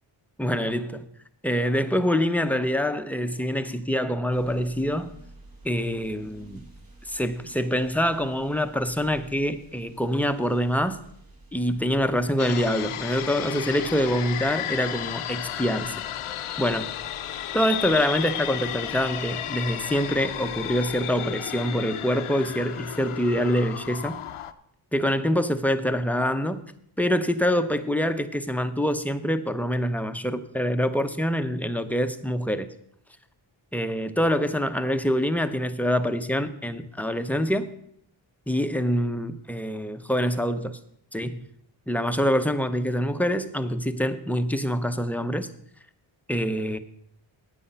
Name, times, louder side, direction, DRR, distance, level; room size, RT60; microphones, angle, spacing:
voice 1, 0.4-1.1 1.4-5.2 5.6-6.6 7.1-11.0 11.5-15.9 16.6-16.9 17.5-24.2 24.9-26.7 27.0-32.7 33.7-37.7 38.5-40.8 41.1-41.4 41.9-45.5 46.3-46.8, equal, 5° left, 9 dB, 0.6 m, -25 dB
sound 1, 4.3-21.2, right 2 dB, 45° right, 2.3 m, -52 dB
sound 2, 12.4-24.5, left 11 dB, 80° left, 0.7 m, -33 dB
9.9 x 9.0 x 5.5 m, 0.71 s
wide cardioid pair, 85°, 49 cm